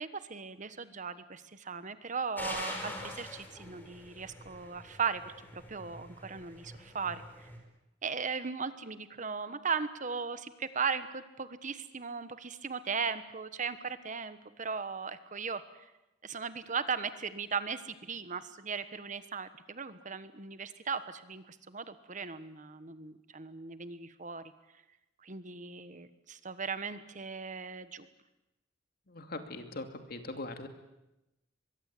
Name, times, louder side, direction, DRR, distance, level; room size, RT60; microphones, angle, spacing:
voice 1, 0.0-5.2 5.5-7.5 8.0-15.6 16.2-24.4 25.2-28.1, right 5 dB, 40° right, 12 dB, 1.3 m, -37 dB
sound 1, 2.4-7.6, left 1 dB, 10° left, 4.9 m, -44 dB
voice 2, 29.1-30.7, left 2 dB, 55° left, 6 dB, 2.6 m, -41 dB
23.5 x 22.5 x 8.5 m, 0.97 s
head